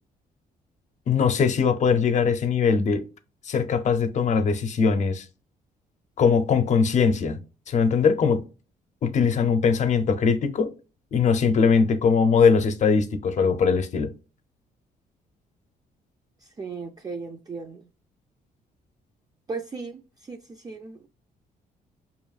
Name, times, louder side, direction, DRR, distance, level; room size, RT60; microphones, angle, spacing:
voice 1, 1.1-3.0 3.4-5.2 6.2-7.4 7.7-8.4 9.0-10.7 11.1-14.1, left 5 dB, 50° left, 0.6 m, -21 dB
voice 2, 16.4-17.9 19.5-21.1, right 4 dB, 25° right, 0.4 m, -37 dB
4.6 x 2.9 x 2.4 m
cardioid pair, 125°, 15 cm